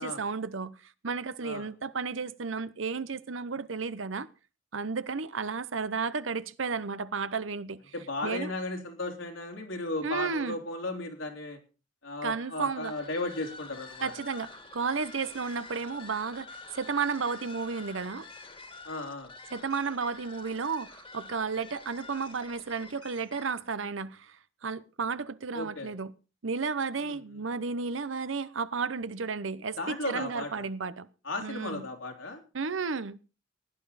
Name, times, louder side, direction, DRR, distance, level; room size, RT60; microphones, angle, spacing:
voice 1, 0.0-4.3 4.7-7.9 8.2-8.5 10.0-10.6 12.2-12.9 14.0-18.3 19.5-24.4 24.6-26.1 26.4-31.1 31.4-31.9 32.5-33.2, right 5 dB, 85° right, 0.8 m, -33 dB
voice 2, 7.9-11.6 12.0-14.1 18.8-19.3 25.5-25.9 27.0-27.2 29.8-30.6 31.2-32.4, left 2 dB, 80° left, 3.2 m, -35 dB
sound 1, 12.3-23.7, left 3 dB, 30° left, 1.9 m, -48 dB
17.0 x 11.0 x 4.1 m
head